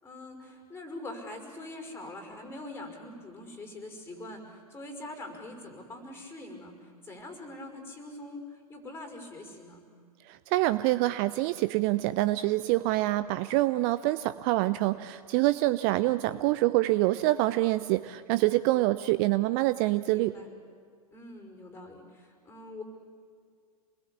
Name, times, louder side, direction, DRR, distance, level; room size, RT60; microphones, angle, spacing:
voice 1, 0.0-9.8 16.2-16.5 20.1-20.5 21.1-22.8, left 2 dB, 10° left, 4 dB, 5.4 m, -43 dB
voice 2, 10.3-20.4, right 18 dB, 40° right, 14 dB, 0.6 m, -26 dB
27.5 x 21.0 x 8.5 m, 2.2 s
figure-of-eight pair, 95°, 19 cm